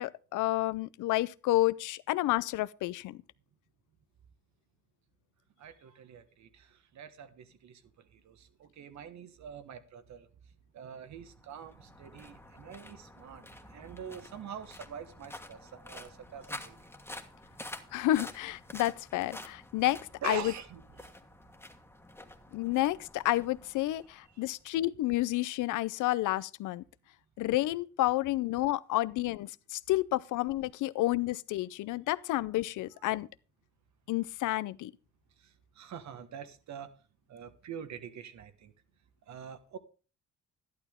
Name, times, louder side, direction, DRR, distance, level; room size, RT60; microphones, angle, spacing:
voice 1, 0.0-3.2 17.9-20.5 22.5-26.8 27.4-33.3 34.1-34.9, left 16 dB, 80° left, 0.5 m, -30 dB
voice 2, 5.6-10.3 10.7-16.9 17.9-18.0 20.2-21.2 24.3-24.4 33.0-33.1 35.4-36.9 37.3-38.7 39.3-39.8, right 8 dB, 65° right, 1.3 m, -45 dB
sound 1, 11.2-24.6, left 1 dB, 10° left, 1.4 m, -49 dB
11.5 x 11.5 x 3.6 m
cardioid pair, 90°, 30 cm